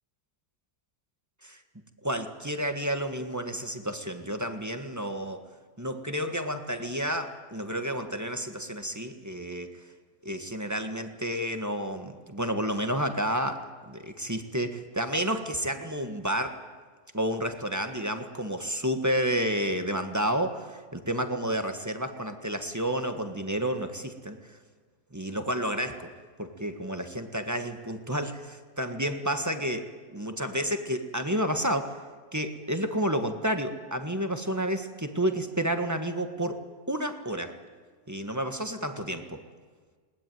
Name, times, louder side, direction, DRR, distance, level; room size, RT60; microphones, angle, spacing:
voice 1, 2.0-5.4 5.8-9.7 10.2-16.6 17.1-24.4 25.1-26.1 26.4-32.0 32.3-37.6 38.1-39.4, equal, 10° right, 6 dB, 1.4 m, -30 dB
21.0 x 19.5 x 9.3 m, 1.5 s
omnidirectional pair, 1.8 m